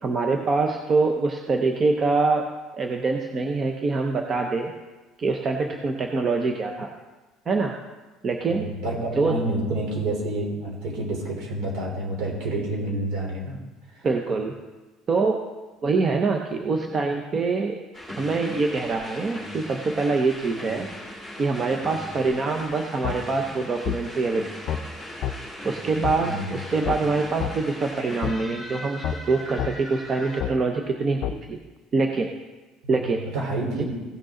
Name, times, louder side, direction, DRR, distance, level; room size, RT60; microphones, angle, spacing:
voice 1, 0.0-2.5 2.7-4.7 5.2-6.9 7.5-7.7 8.2-8.7 9.2-9.4 14.0-14.5 15.1-15.4 15.8-17.8 18.2-20.9 21.4-24.8 25.6-31.2 31.5-31.6 31.9-32.3 32.9-33.2, right 3 dB, 25° right, 3 dB, 0.7 m, -24 dB
voice 2, 8.5-13.6 13.9-14.1 26.1-26.6 33.0-33.8, right 1 dB, 60° right, -2 dB, 3.6 m, -29 dB
sound 1, 17.9-30.4, equal, 5° right, 2.2 m, -39 dB
sound 2, 23.0-23.2 23.8-24.0 24.7-24.8 25.2-25.4 26.0-26.2 26.8-27.0 27.4-27.5 28.2-28.3 29.0-29.2 29.6-29.7 30.4-30.5 31.2-31.4, left 9 dB, 45° left, 0.6 m, -27 dB
16.0 x 6.6 x 3.8 m, 1.2 s
cardioid pair, 175°, 0 cm